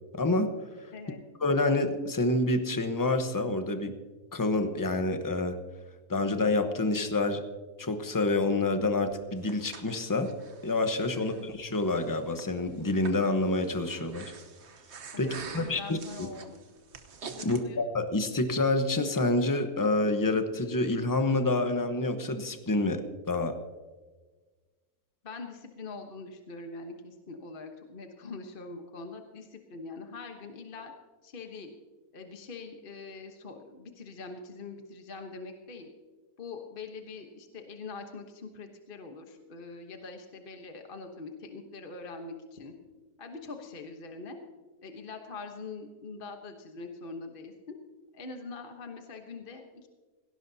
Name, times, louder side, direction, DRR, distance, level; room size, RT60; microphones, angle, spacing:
voice 1, 0.1-0.5 0.8-0.9 1.4-3.9 4.3-5.6 6.1-7.4 7.8-10.3 10.6-14.3 15.2-16.0 17.4-23.6, left 2 dB, 15° left, 7 dB, 0.8 m, -28 dB
voice 2, 0.9-1.2 11.1-11.5 15.1-16.6 17.4-17.8 25.2-30.9 31.2-31.7 32.1-35.9 36.4-42.7 43.2-44.4 44.8-47.8 48.1-49.9, left 3 dB, 40° left, 4 dB, 1.2 m, -43 dB
Breathing, 9.1-17.6, right 5 dB, 50° right, 1.2 m, -47 dB
18.0 x 17.0 x 2.8 m, 1.3 s
omnidirectional pair, 1.6 m